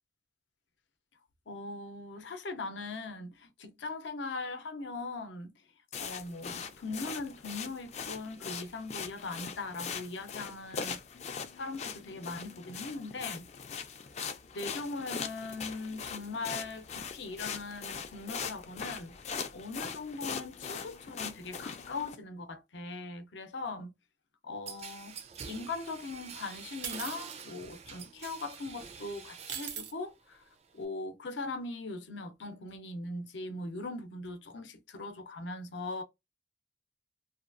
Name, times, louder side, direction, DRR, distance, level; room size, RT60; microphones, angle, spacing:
voice 1, 1.5-5.5 6.0-11.0 11.5-13.4 14.5-19.1 19.5-23.9 24.4-25.1 25.4-30.4 30.7-36.0, left 3 dB, 75° left, 0.6 m, -40 dB
sound 1, 5.9-22.2, left 6 dB, 35° left, 0.4 m, -41 dB
sound 2, 24.7-29.9 30.2-30.8, right 6 dB, 35° right, 0.4 m, -46 dB
sound 3, 26.8-27.4 28.4-28.6 29.5-29.9, right 8 dB, 80° right, 0.6 m, -40 dB
2.8 x 2.3 x 2.5 m
head